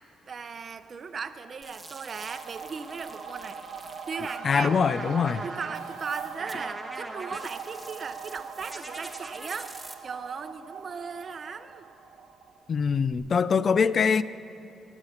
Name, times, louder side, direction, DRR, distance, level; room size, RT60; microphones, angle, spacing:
voice 1, 0.3-3.6 4.1-4.7 5.4-11.8, right 5 dB, 45° right, 0.7 m, -37 dB
sound 1, 1.3-12.8 13.1-13.2, right 6 dB, 75° right, 1.1 m, -41 dB
sound 2, 1.6-9.9, right 2 dB, 10° right, 1.2 m, -43 dB
voice 2, 4.4-5.4 12.7-14.2, left 6 dB, 45° left, 0.4 m, -23 dB
22.5 x 8.1 x 5.8 m
cardioid pair, 90°, 0 cm